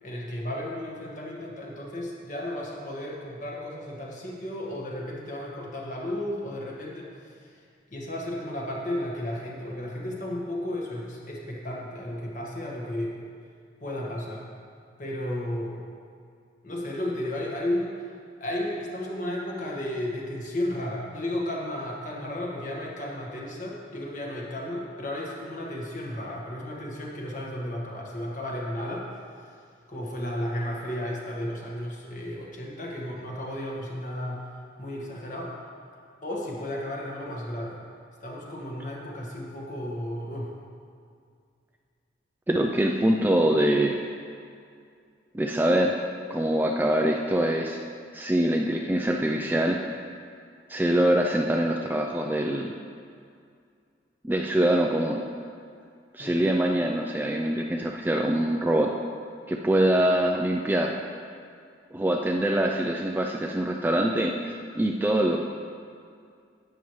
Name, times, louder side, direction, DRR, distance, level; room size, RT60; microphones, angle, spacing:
voice 1, 0.0-7.6 7.9-13.1 13.8-14.4 15.0-15.8 16.6-29.1 29.4-29.5 29.9-34.4 34.8-35.5 36.2-37.8 38.2-40.5 56.2-56.4, left 1 dB, 40° left, -3 dB, 1.6 m, -33 dB
voice 2, 42.5-44.0 45.3-45.9 46.3-47.8 48.1-49.8 50.7-52.7 54.2-55.2 56.1-58.9 59.5-60.9 61.9-65.4, right 1 dB, 10° right, 1 dB, 0.3 m, -24 dB
11.5 x 8.6 x 3.2 m, 2.3 s
head